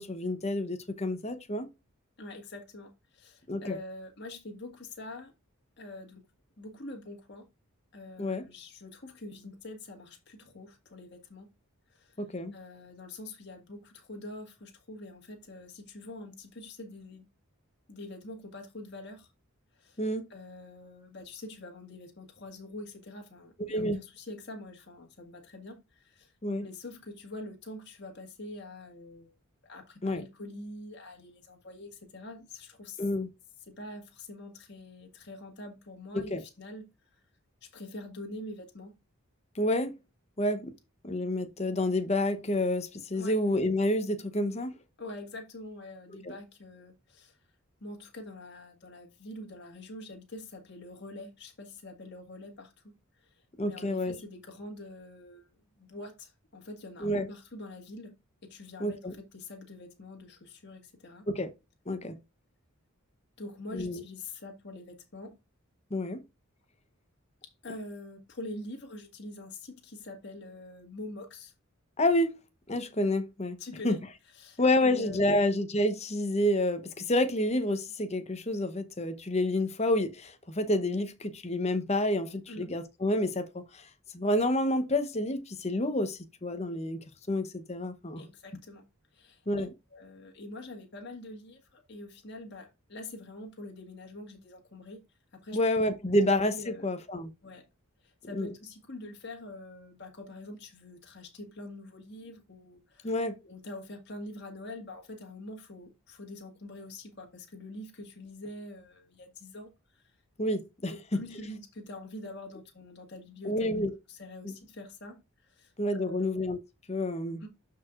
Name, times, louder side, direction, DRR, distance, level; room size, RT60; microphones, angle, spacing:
voice 1, 0.0-1.7 3.5-3.8 8.2-8.4 12.2-12.5 20.0-20.3 23.7-24.0 26.4-26.6 30.0-30.2 33.0-33.3 36.1-36.4 39.6-40.0 40.4-40.7 41.0-44.8 53.6-54.1 57.0-57.3 58.8-59.1 61.3-61.5 61.9-62.2 63.7-64.0 65.9-66.2 72.0-72.3 72.7-73.6 73.8-74.0 74.6-83.8 84.1-88.3 89.5-89.7 95.5-97.3 98.3-98.5 103.0-103.3 110.4-110.9 113.4-113.9 114.4-114.5 115.8-116.6 116.9-117.4, left 1 dB, 30° left, 0.9 m, -29 dB
voice 2, 2.2-5.3 5.8-6.2 6.6-7.5 7.9-11.5 11.9-12.2 12.5-17.3 17.9-19.3 19.7-20.0 20.3-26.3 26.6-29.4 29.6-33.0 33.7-36.9 37.6-38.9 43.1-43.4 45.0-47.4 47.8-52.9 53.2-58.1 58.4-61.2 63.4-65.4 67.4-71.5 73.6-74.0 74.3-75.4 82.5-82.7 88.2-88.8 89.1-95.0 95.3-95.6 96.5-96.9 97.4-97.6 98.0-103.2 103.4-110.1 110.9-113.7 114.1-116.3 117.4-117.5, left 2 dB, 50° left, 1.8 m, -45 dB
12.0 x 4.7 x 2.5 m
head